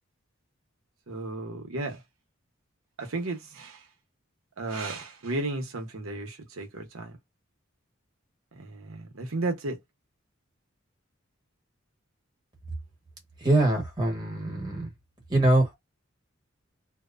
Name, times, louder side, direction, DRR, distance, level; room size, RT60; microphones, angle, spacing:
voice 1, 1.1-2.0 3.0-3.8 4.6-7.2 8.5-9.8, right 2 dB, 85° right, 0.9 m, -34 dB
voice 2, 13.4-14.9 15.3-15.8, right 2 dB, 20° right, 1.2 m, -23 dB
2.8 x 2.1 x 2.4 m
head